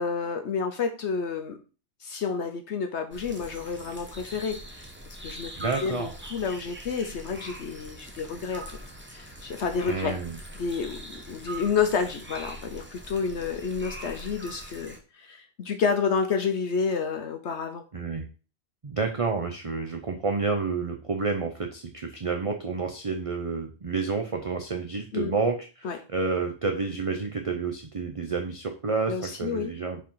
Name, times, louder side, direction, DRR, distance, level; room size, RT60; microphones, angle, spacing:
voice 1, 0.0-1.6 2.0-4.9 5.2-8.8 9.1-10.1 10.6-17.8 25.1-25.3 25.8-26.0 29.1-29.7, left 5 dB, 65° left, 6 dB, 1.1 m, -30 dB
sound 1, 3.1-15.0, right 1 dB, 10° right, 1.1 m, -42 dB
voice 2, 5.6-6.1 9.8-10.4 17.9-18.3 18.8-30.0, right 4 dB, 35° right, 4 dB, 0.7 m, -29 dB
4.9 x 4.6 x 5.5 m, 0.35 s
omnidirectional pair, 1.3 m